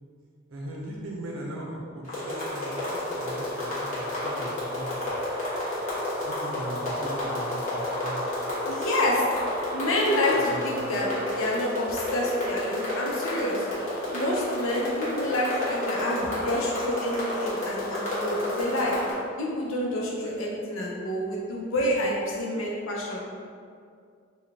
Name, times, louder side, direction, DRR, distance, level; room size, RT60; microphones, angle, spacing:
voice 1, 0.5-5.2 6.2-8.5 10.3-10.9, right 1 dB, 85° right, -2 dB, 0.6 m, -39 dB
sound 1, 2.0-19.1, left 1 dB, 35° left, 1.1 m, -31 dB
voice 2, 8.6-9.3 9.7-11.1 11.4-13.7 14.1-18.9 19.4-23.2, left 1 dB, 80° left, -3 dB, 0.7 m, -28 dB
3.8 x 2.3 x 3.4 m, 2.2 s
head